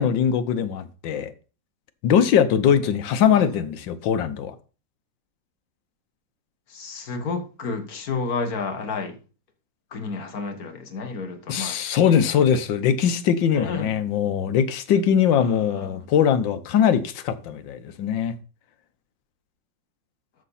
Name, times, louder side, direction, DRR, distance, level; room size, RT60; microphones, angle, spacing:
voice 1, 0.0-1.3 2.0-4.5 11.5-18.3, left 8 dB, 85° left, 1.6 m, -21 dB
voice 2, 6.7-9.2 9.9-11.8 13.5-13.9 15.4-16.0, left 4 dB, 55° left, 1.8 m, -31 dB
12.5 x 6.6 x 4.2 m
omnidirectional pair, 2.0 m